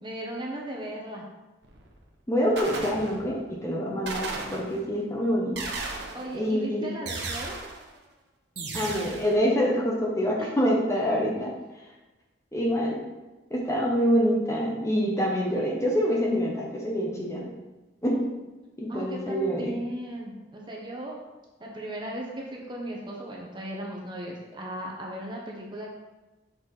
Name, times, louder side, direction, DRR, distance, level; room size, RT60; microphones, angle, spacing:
voice 1, 0.0-1.3 6.1-7.6 10.4-10.5 18.9-21.2 21.6-25.9, right 1 dB, 25° right, -2 dB, 1.0 m, -36 dB
sound 1, 1.6-2.0 2.6-3.5 4.1-5.0 5.6-6.4 7.1-7.9 8.6-9.3, right 3 dB, 65° right, 1.0 m, -35 dB
voice 2, 2.3-5.6 6.3-6.8 8.7-11.5 12.5-13.0 13.5-17.5 18.0-18.2 18.8-19.7, equal, 15° left, -3 dB, 0.9 m, -26 dB
6.3 x 4.7 x 4.0 m, 1.1 s
head